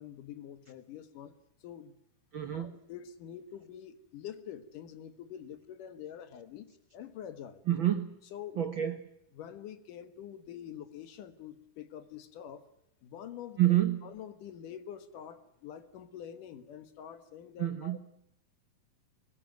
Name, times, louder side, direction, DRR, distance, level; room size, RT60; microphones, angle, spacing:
voice 1, 0.0-1.3 1.6-2.0 2.3-6.7 6.9-7.6 8.3-8.6 9.3-12.7 13.0-13.6 14.0-18.0, left 9 dB, 70° left, 11 dB, 2.9 m, -46 dB
voice 2, 2.3-2.7 7.7-8.1 8.6-9.0 13.6-14.1 17.6-18.0, right 13 dB, 85° right, 9 dB, 1.0 m, -28 dB
23.0 x 20.0 x 9.2 m, 0.80 s
omnidirectional pair, 4.1 m